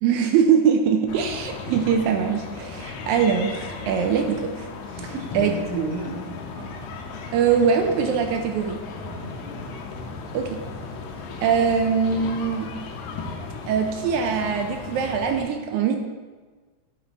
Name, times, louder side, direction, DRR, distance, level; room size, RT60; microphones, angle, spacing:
voice 1, 0.0-4.7 5.3-5.5 7.3-8.8 10.3-10.6 11.4-12.7 13.7-16.0, right 6 dB, 80° right, 5 dB, 1.9 m, -22 dB
sound 1, 1.1-15.4, left 4 dB, 75° left, 1.9 m, -36 dB
voice 2, 5.0-6.7 9.0-9.6, right 2 dB, 45° right, -3 dB, 1.3 m, -34 dB
9.6 x 3.2 x 3.9 m, 1.4 s
omnidirectional pair, 3.5 m